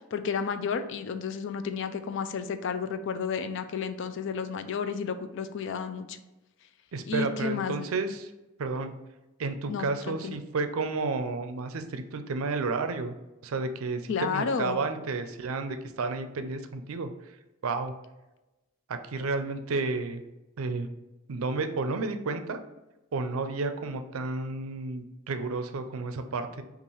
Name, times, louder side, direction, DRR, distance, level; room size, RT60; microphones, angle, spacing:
voice 1, 0.1-6.2 7.1-7.9 9.7-10.4 14.1-14.8, left 6 dB, 60° left, 9 dB, 0.4 m, -32 dB
voice 2, 6.9-8.3 8.6-8.9 9.4-13.1 13.4-17.1 17.6-17.9 18.9-20.2 20.6-20.9 21.3-22.6 23.1-26.6, right 3 dB, 75° right, 8 dB, 0.5 m, -31 dB
5.4 x 2.5 x 3.1 m, 1.0 s
head